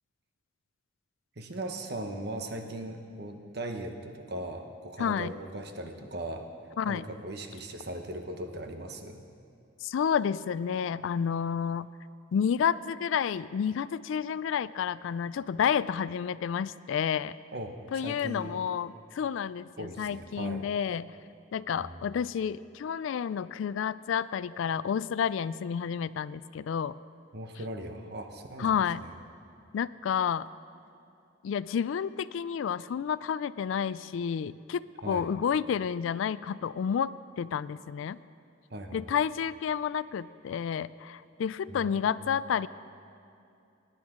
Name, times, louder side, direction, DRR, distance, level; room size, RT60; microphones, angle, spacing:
voice 1, 1.4-6.5 6.9-9.3 17.5-18.6 19.8-20.7 21.8-22.1 27.3-29.1 35.0-35.3 38.7-39.2 41.7-42.4, right 1 dB, 50° right, 5 dB, 1.0 m, -39 dB
voice 2, 5.0-5.3 6.8-7.0 9.8-11.9 12.3-17.3 17.9-21.1 21.5-27.0 28.6-29.0 29.7-30.5 31.4-38.2 38.9-42.7, left 7 dB, 75° left, 17 dB, 0.3 m, -30 dB
20.0 x 10.5 x 3.7 m, 2.6 s
head